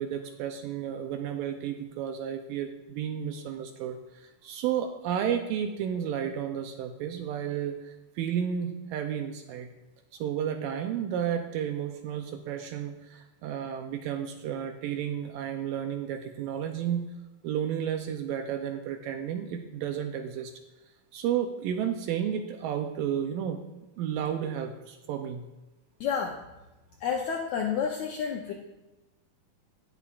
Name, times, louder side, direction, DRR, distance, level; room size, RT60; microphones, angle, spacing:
voice 1, 0.0-9.7 10.1-17.1 17.4-20.5 21.1-23.6 24.0-25.5, right 9 dB, 80° right, 5 dB, 2.1 m, -32 dB
voice 2, 26.0-26.4 27.0-28.5, left 7 dB, 85° left, 1 dB, 1.7 m, -30 dB
18.5 x 7.1 x 2.5 m, 1.1 s
omnidirectional pair, 4.4 m